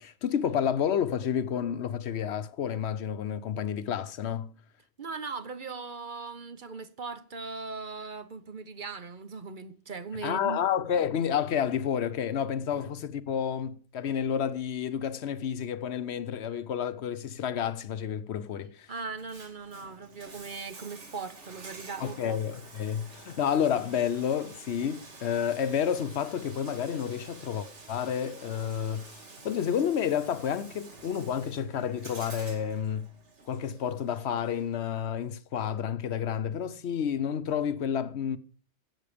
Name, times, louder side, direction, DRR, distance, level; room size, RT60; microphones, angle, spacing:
voice 1, 0.0-4.5 10.2-18.9 22.0-29.1 29.4-33.1 33.5-38.4, left 8 dB, 70° left, 1.0 m, -30 dB
voice 2, 5.0-10.6 12.7-12.8 18.9-22.5, right 4 dB, 50° right, 1.0 m, -39 dB
Bathtub (filling or washing), 19.1-35.0, right 3 dB, 85° right, 2.3 m, -49 dB
14.0 x 8.2 x 5.0 m
omnidirectional pair, 1.2 m